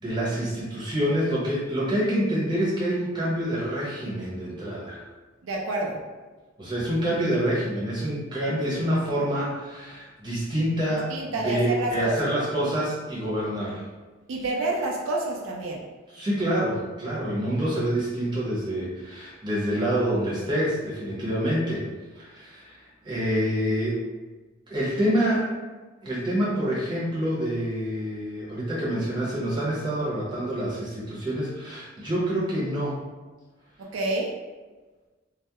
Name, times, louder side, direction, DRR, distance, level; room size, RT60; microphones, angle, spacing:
voice 1, 0.0-5.0 6.6-11.1 11.4-13.8 16.1-21.9 22.2-22.8 23.0-24.0 24.7-25.5 26.0-33.0, equal, 25° right, -7 dB, 0.7 m, -27 dB
voice 2, 5.4-6.0 11.1-12.1 14.3-15.8 33.8-34.3, right 2 dB, 85° right, -1 dB, 0.4 m, -28 dB
2.2 x 2.0 x 2.8 m, 1.3 s
head